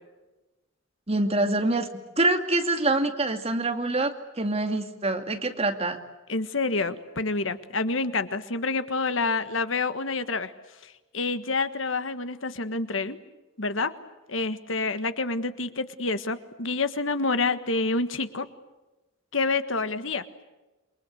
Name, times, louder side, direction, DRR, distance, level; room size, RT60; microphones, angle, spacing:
voice 1, 1.1-1.9 2.2-6.0, right 2 dB, 30° right, 6 dB, 2.4 m, -25 dB
voice 2, 6.3-10.5 10.8-13.2 13.6-13.9 14.3-18.5 19.3-20.2, left 3 dB, 75° left, 11 dB, 1.6 m, -28 dB
28.5 x 23.5 x 8.3 m, 1.1 s
head